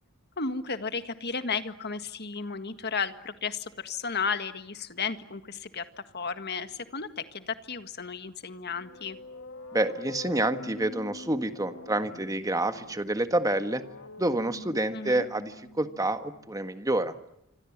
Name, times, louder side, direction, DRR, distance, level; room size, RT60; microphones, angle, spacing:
voice 1, 0.4-5.8 6.1-9.2 14.9-15.3, left 5 dB, 50° left, 10 dB, 1.8 m, -33 dB
sound 1, 8.7-16.4, left 2 dB, 65° left, 1.8 m, -45 dB
voice 2, 9.7-13.8 14.2-17.1, right 1 dB, 15° right, 9 dB, 1.6 m, -28 dB
27.0 x 25.5 x 7.4 m, 0.81 s
head